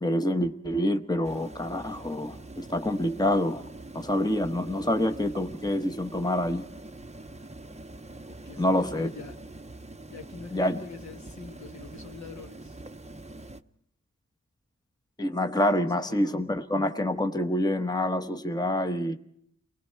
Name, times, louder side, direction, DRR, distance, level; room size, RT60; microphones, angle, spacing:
voice 1, 0.0-3.6 3.9-6.6 8.6-9.1 10.5-10.8 15.2-19.2, left 1 dB, 15° left, 1.0 m, -27 dB
sound 1, 1.2-13.6, right 2 dB, 20° right, 0.7 m, -44 dB
voice 2, 8.3-9.4 10.1-12.8 15.8-16.4, left 4 dB, 65° left, 1.7 m, -45 dB
30.0 x 20.5 x 4.6 m
wide cardioid pair, 80°, 30 cm